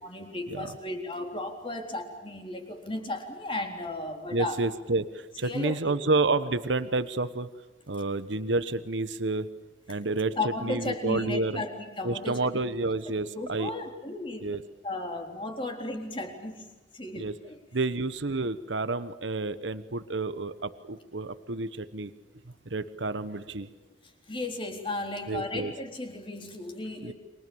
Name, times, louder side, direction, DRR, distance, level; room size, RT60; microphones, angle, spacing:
voice 1, 0.0-4.6 5.4-6.0 10.4-12.4 13.3-14.6 14.8-16.7 16.9-17.6 24.3-27.1, left 2 dB, 30° left, 3 dB, 3.9 m, -35 dB
voice 2, 4.3-7.5 7.9-9.5 9.9-10.3 10.6-11.6 12.0-13.7 14.4-14.6 17.2-17.3 17.7-22.1 22.7-23.7 25.3-25.7 27.0-27.1, right 3 dB, 85° right, 12 dB, 1.1 m, -29 dB
30.0 x 24.5 x 7.1 m, 1.1 s
head